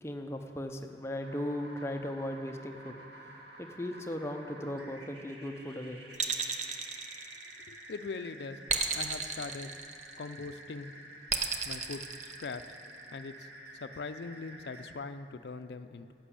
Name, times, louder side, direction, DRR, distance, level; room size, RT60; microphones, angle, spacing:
voice 1, 0.0-3.0 3.6-6.0, left 1 dB, 15° left, 5 dB, 0.6 m, -37 dB
sound 1, 1.2-14.9, right 1 dB, 70° right, 1.9 m, -50 dB
sound 2, 6.1-7.8 8.7-10.3 11.3-12.9, right 5 dB, 40° right, 0.7 m, -33 dB
voice 2, 7.7-8.6 8.9-9.7 10.2-10.9 11.6-12.6 13.1-16.1, left 4 dB, 70° left, 11 dB, 0.4 m, -41 dB
11.5 x 6.1 x 8.3 m, 2.9 s
head